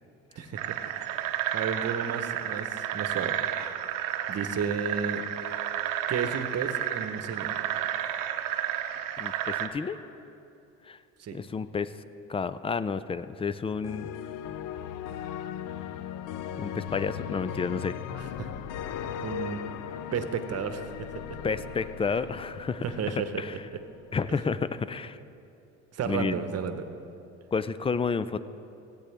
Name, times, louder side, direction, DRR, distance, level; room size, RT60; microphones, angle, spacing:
voice 1, 0.4-0.8 1.1-1.2 1.5-3.8 4.3-5.2 6.1-7.5 11.2-11.4 18.1-18.5 19.2-19.6 20.1-21.4 22.8-23.8 25.9-26.9, right 6 dB, 45° right, 9 dB, 1.0 m, -33 dB
Mauritius Frog Symphony, 0.6-9.7, right 11 dB, 70° right, 0.8 m, -31 dB
voice 2, 9.2-10.0 10.9-11.0 11.3-11.9 12.3-14.1 16.6-18.0 21.4-22.8 23.2-23.6 24.1-25.2 26.1-26.4 27.5-28.4, left 5 dB, 15° left, 15 dB, 0.3 m, -30 dB
sound 1, 13.8-23.9, left 9 dB, 65° left, 0.6 m, -38 dB
16.5 x 8.4 x 3.4 m, 2.7 s
supercardioid pair, 75°, 34 cm